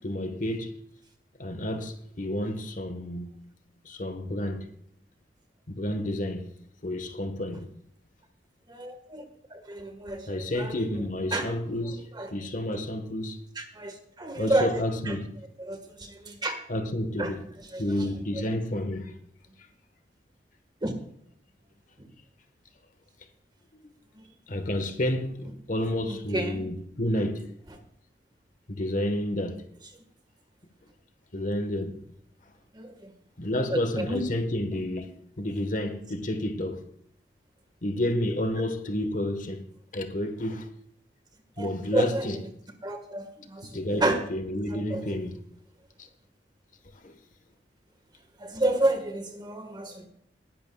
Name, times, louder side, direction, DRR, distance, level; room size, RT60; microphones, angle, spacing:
voice 1, 0.0-0.7 1.4-3.3 3.8-4.7 5.7-6.5 6.8-7.7 10.3-13.4 14.3-15.3 16.7-17.5 17.8-19.2 23.7-23.8 24.5-27.5 28.7-29.6 31.3-32.1 33.4-35.1 35.4-36.8 37.8-39.7 39.9-40.7 41.6-42.4 43.7-45.4 46.0-46.1 47.0-47.2, left 1 dB, 45° left, 1.2 m, -30 dB
voice 2, 8.7-9.2 9.5-10.3 10.5-10.8 11.3-11.5 12.1-12.3 13.6-14.7 15.1-15.2 15.6-16.6 17.2-17.3 17.7-17.8 20.8-20.9 22.0-22.1 26.1-26.6 32.7-33.1 33.7-34.2 41.6-42.3 42.8-44.2 44.7-45.0 48.4-50.1, right 1 dB, 25° right, 1.5 m, -30 dB
20.0 x 11.0 x 2.3 m
head